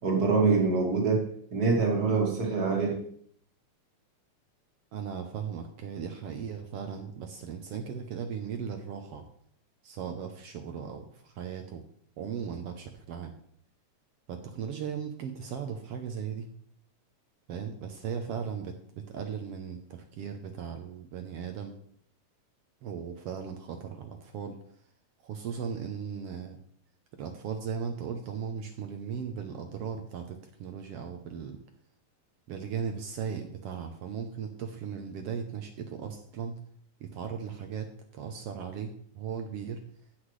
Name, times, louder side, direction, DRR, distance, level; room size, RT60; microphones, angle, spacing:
voice 1, 0.0-3.0, right 4 dB, 35° right, 0 dB, 2.0 m, -25 dB
voice 2, 4.9-9.3 9.8-11.8 12.2-13.3 14.3-16.5 17.5-21.7 22.8-24.6 25.2-26.6 27.2-31.6 32.5-36.5 37.0-39.8, right 7 dB, 70° right, 6 dB, 1.6 m, -37 dB
15.5 x 5.8 x 3.2 m, 0.62 s
omnidirectional pair, 3.3 m